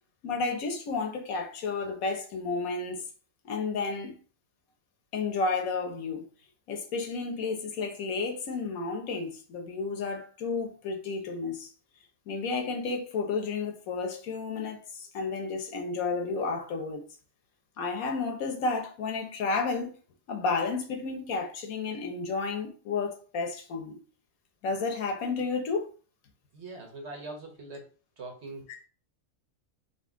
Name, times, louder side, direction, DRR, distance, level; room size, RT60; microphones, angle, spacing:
voice 1, 0.2-3.0 3.4-4.1 5.1-6.3 6.7-11.7 12.3-17.0 17.8-19.9 20.3-24.0 24.6-25.9, left 4 dB, 90° left, 1.3 m, -32 dB
voice 2, 26.5-27.8 28.2-28.6, right 2 dB, 55° right, 1.2 m, -42 dB
4.0 x 2.5 x 3.6 m
omnidirectional pair, 1.4 m